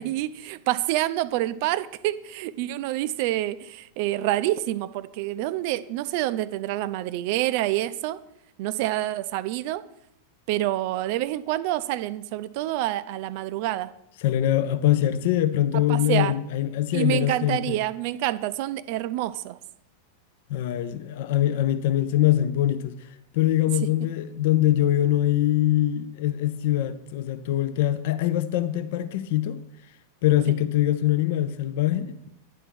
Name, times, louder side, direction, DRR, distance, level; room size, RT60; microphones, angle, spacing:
voice 1, 0.0-8.2 8.6-9.8 10.5-13.9 15.7-16.3 16.9-19.6 30.5-30.6, right 14 dB, 45° right, 0.4 m, -27 dB
voice 2, 14.2-17.8 20.5-23.0 23.3-29.6 30.2-32.3, left 13 dB, 50° left, 0.5 m, -23 dB
9.9 x 4.4 x 6.2 m
figure-of-eight pair, 90°, 0 cm